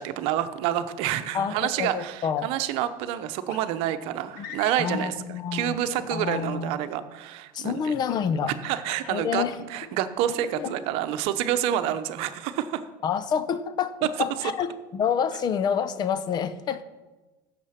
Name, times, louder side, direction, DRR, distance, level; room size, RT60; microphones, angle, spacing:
voice 1, 0.0-7.9 8.6-9.4 9.7-12.8, right 11 dB, 65° right, 11 dB, 0.9 m, -28 dB
voice 2, 1.3-2.5 4.4-4.5 4.8-5.8 6.1-6.8 7.5-8.5 9.1-9.6 13.0-14.7 14.9-16.8, left 7 dB, 40° left, 14 dB, 0.9 m, -28 dB
sound 1, 3.5-3.7 4.3-5.0 5.8-6.4 7.9-8.3 8.8-9.9 10.3-10.7, left 6 dB, 75° left, 1.7 m, -41 dB
16.0 x 6.8 x 5.9 m, 1.2 s
supercardioid pair, 110°, 11 cm